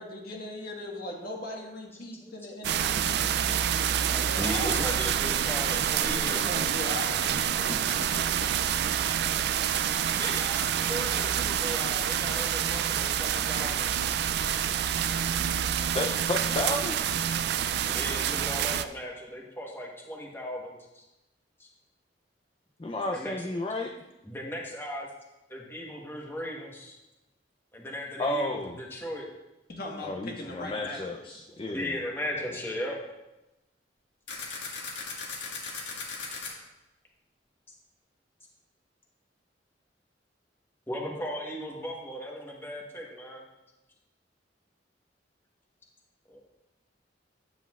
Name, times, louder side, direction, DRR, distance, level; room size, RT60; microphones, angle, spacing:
voice 1, 0.0-3.4 3.9-4.8 6.0-7.3 7.6-7.9 29.7-31.0, left 1 dB, 55° left, -1 dB, 1.5 m, -39 dB
sound 1, 2.6-18.9, right 9 dB, 60° right, 0.3 m, -27 dB
voice 2, 3.2-3.6 4.4-6.4 8.0-8.5 10.2-13.9 17.9-21.0 21.6-21.7 23.1-23.3 24.2-25.1 25.5-27.0 27.7-29.3 31.5-33.0 40.9-43.4 46.3-46.4, equal, 15° left, -1 dB, 1.1 m, -37 dB
voice 3, 15.9-17.0 22.8-23.9 28.2-28.8 30.0-32.0, left 2 dB, 30° left, 2 dB, 0.4 m, -32 dB
sound 2, 34.3-36.5, left 4 dB, 80° left, 1.6 m, -37 dB
9.2 x 7.9 x 2.4 m, 0.97 s
head